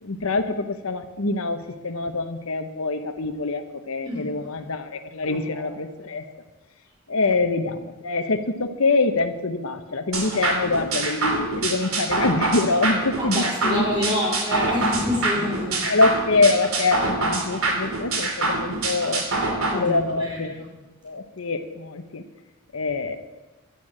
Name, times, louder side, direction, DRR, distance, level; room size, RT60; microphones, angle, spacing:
voice 1, 0.0-6.3 7.1-14.1 15.8-19.2 19.7-20.6 21.0-22.2 22.7-23.2, left 3 dB, 75° left, 8 dB, 1.0 m, -25 dB
voice 2, 5.3-5.7 13.2-15.9 19.7-20.6, left 1 dB, 20° right, -3 dB, 4.8 m, -27 dB
sound 1, 10.1-19.7, right 2 dB, 80° right, 2.6 m, -25 dB
12.0 x 9.3 x 8.7 m, 1.1 s
head